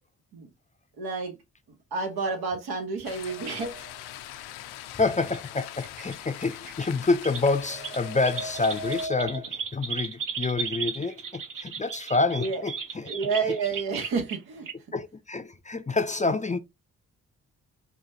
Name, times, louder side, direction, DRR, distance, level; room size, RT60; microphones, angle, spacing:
voice 1, 1.0-1.4 1.9-3.9 12.4-12.6 13.0-14.7, right 4 dB, 80° right, 1.3 m, -30 dB
sound 1, 3.0-9.1, left 13 dB, 80° left, 0.5 m, -42 dB
sound 2, 3.3-4.0 7.3-9.4, right 1 dB, 35° right, 0.7 m, -38 dB
voice 2, 4.9-13.1 14.9-16.6, left 3 dB, 20° left, 0.5 m, -27 dB
sound 3, 5.0-5.4 5.8-6.1 6.5-6.9 7.2-7.4 7.8-14.4 14.7-14.8, right 6 dB, 55° right, 1.0 m, -35 dB
5.0 x 2.3 x 2.8 m
hypercardioid pair, 40°, 38 cm